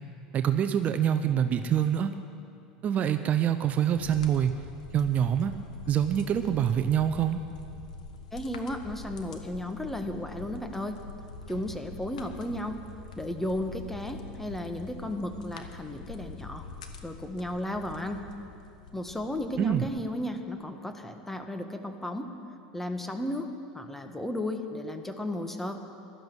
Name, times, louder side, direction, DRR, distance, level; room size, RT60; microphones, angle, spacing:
voice 1, 0.3-2.1 2.8-4.6 4.9-5.5 5.9-7.4 19.6-19.8, right 9 dB, 40° right, 9 dB, 0.7 m, -25 dB
sound 1, 3.9-19.9, left 4 dB, 90° left, 1.2 m, -45 dB
voice 2, 8.3-11.0 11.5-12.8 13.2-16.6 17.0-18.2 18.9-22.3 22.7-23.5 23.7-25.8, left 1 dB, 5° left, 6 dB, 1.4 m, -34 dB
16.5 x 12.5 x 6.3 m, 2.5 s
hypercardioid pair, 95°, 4 cm